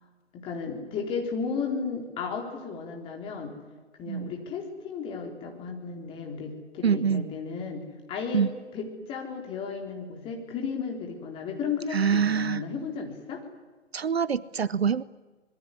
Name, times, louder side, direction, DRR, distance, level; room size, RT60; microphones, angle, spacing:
voice 1, 0.3-3.6 4.0-8.4 8.7-13.4, left 5 dB, 15° left, 2 dB, 3.9 m, -34 dB
voice 2, 6.8-7.3 8.3-8.5 11.9-12.6 13.9-15.0, right 7 dB, 60° right, 19 dB, 0.9 m, -25 dB
26.0 x 22.0 x 9.8 m, 1.3 s
figure-of-eight pair, 145°, 36 cm